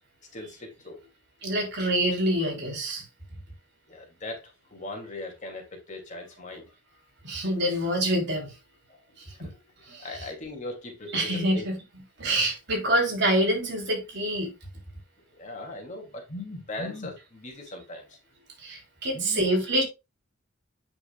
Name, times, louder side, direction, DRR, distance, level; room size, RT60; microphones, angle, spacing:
voice 1, 0.3-1.0 3.9-6.7 8.9-9.0 9.3-9.6 9.9-11.7 15.3-18.2 19.1-19.4, left 2 dB, 40° left, 2.8 m, -39 dB
voice 2, 1.4-3.0 7.2-8.5 9.9-10.1 11.1-11.8 12.2-14.5 18.6-19.8, right 1 dB, 60° right, 3.7 m, -26 dB
8.9 x 5.9 x 2.4 m
head